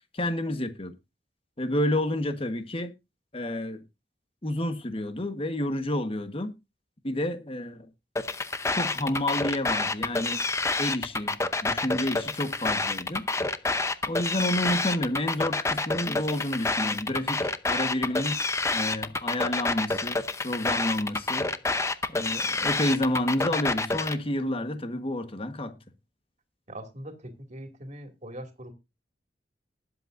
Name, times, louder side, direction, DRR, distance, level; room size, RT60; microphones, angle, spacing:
voice 1, 0.1-0.9 1.6-2.9 3.3-3.8 4.4-6.5 7.0-7.9 8.7-10.5 10.8-13.3 14.1-18.4 18.7-21.5 22.1-25.7, left 1 dB, 35° left, 1.3 m, -30 dB
sound 1, 8.2-24.2, left 3 dB, 15° left, 0.7 m, -28 dB
voice 2, 26.7-28.7, right 1 dB, 45° right, 2.5 m, -41 dB
20.0 x 8.1 x 2.6 m
head